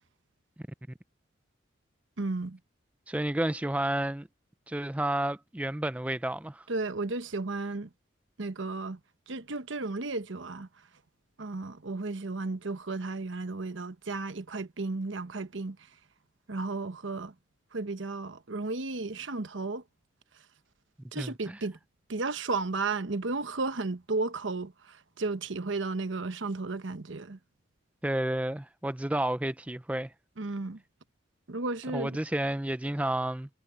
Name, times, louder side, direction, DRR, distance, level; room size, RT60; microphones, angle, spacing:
voice 1, 2.2-2.6 6.7-7.9 8.4-9.0 9.3-10.7 11.4-15.8 16.5-17.3 17.7-19.8 21.1-21.8 22.1-27.4 30.4-30.8 31.5-32.2, right 3 dB, 75° right, 1.0 m, -33 dB
voice 2, 3.1-4.3 4.7-6.7 21.2-21.6 28.0-30.1 31.9-33.5, right 1 dB, 5° right, 0.4 m, -31 dB
head